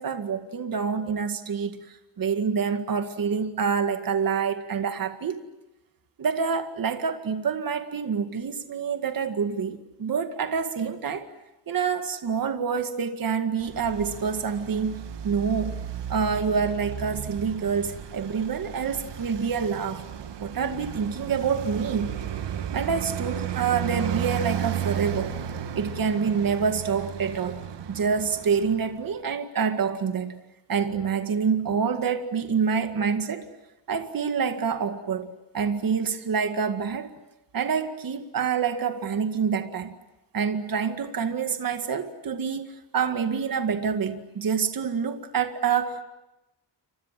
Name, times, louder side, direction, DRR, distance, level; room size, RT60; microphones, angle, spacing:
voice 1, 0.0-5.4 6.2-11.3 11.7-15.8 16.1-20.0 20.4-22.1 22.7-25.3 25.8-27.6 27.9-30.4 30.7-33.5 33.9-37.1 37.5-39.9 40.3-46.0, right 6 dB, 50° right, 2.1 m, -27 dB
Traffic noise roadway noise, 13.6-29.1, right 10 dB, 70° right, 1.6 m, -34 dB
29.0 x 25.5 x 7.6 m
wide cardioid pair, 160°, 44 cm